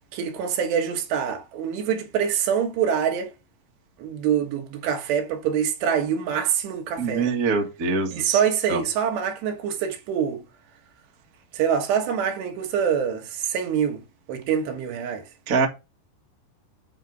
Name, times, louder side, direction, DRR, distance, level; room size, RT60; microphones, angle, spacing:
voice 1, 0.1-3.3 4.0-7.3 8.1-10.4 11.5-14.0 14.3-15.2, right 8 dB, 85° right, 3.5 m, -25 dB
voice 2, 7.0-8.4 8.7-8.8 15.5-15.7, right 4 dB, 55° right, 0.9 m, -24 dB
9.1 x 4.6 x 5.1 m
omnidirectional pair, 4.8 m